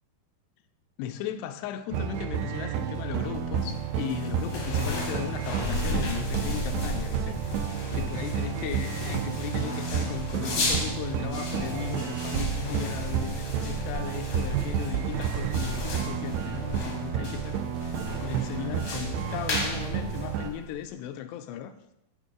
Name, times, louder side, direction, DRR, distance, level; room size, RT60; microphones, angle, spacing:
voice 1, 1.0-21.7, left 10 dB, 85° left, 8 dB, 2.6 m, -37 dB
sound 1, 1.9-20.5, right 8 dB, 85° right, 2.6 m, -31 dB
sound 2, 3.0-20.9, left 2 dB, 60° left, 1.4 m, -35 dB
9.3 x 5.2 x 3.7 m, 0.82 s
omnidirectional pair, 4.8 m